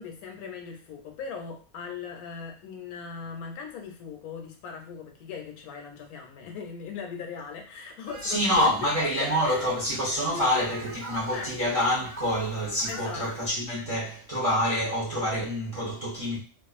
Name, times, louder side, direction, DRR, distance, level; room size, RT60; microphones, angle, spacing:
voice 1, 0.0-9.7 10.3-10.7 11.3-11.5 12.9-13.5, left 6 dB, 80° left, 1.0 m, -39 dB
Fowl, 8.1-13.6, right 2 dB, 70° right, 0.9 m, -45 dB
voice 2, 8.2-16.4, equal, 45° right, 0.4 m, -27 dB
2.4 x 2.3 x 2.3 m
omnidirectional pair, 1.6 m